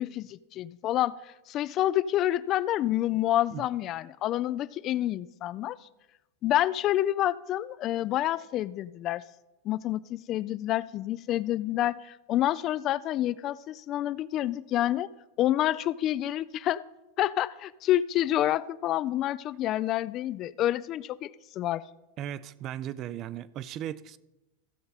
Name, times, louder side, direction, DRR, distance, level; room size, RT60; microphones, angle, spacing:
voice 1, 0.0-5.8 6.4-9.2 9.6-15.1 15.4-16.8 17.2-21.8, left 13 dB, 40° left, 0.3 m, -28 dB
voice 2, 22.2-24.2, right 11 dB, 40° right, 0.4 m, -37 dB
15.0 x 6.6 x 4.1 m
hypercardioid pair, 110°, 0 cm